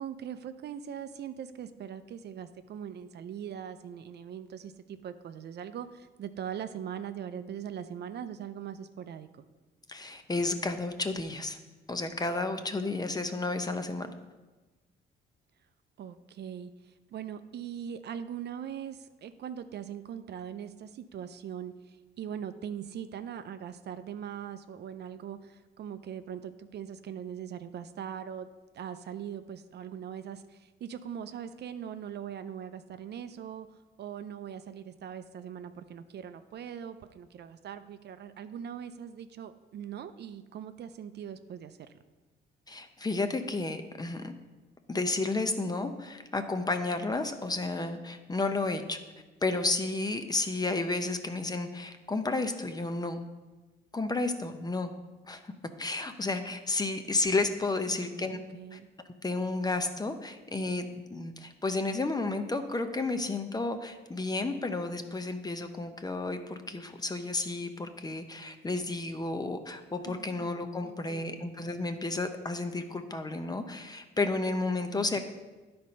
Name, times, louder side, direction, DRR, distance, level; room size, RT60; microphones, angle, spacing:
voice 1, 0.0-9.4 16.0-28.5 28.7-33.7 34.0-41.9 57.9-58.9 70.1-70.6 70.8-71.4 74.9-75.2, right 9 dB, 55° right, 10 dB, 0.5 m, -41 dB
voice 2, 9.9-11.6 11.9-14.1 42.7-44.3 44.9-49.0 49.4-53.2 53.9-54.9 55.3-55.5 55.8-58.4 58.7-58.8 59.2-75.2, left 3 dB, 20° left, 8 dB, 0.7 m, -32 dB
10.5 x 4.3 x 5.2 m, 1.2 s
cardioid pair, 90°, 20 cm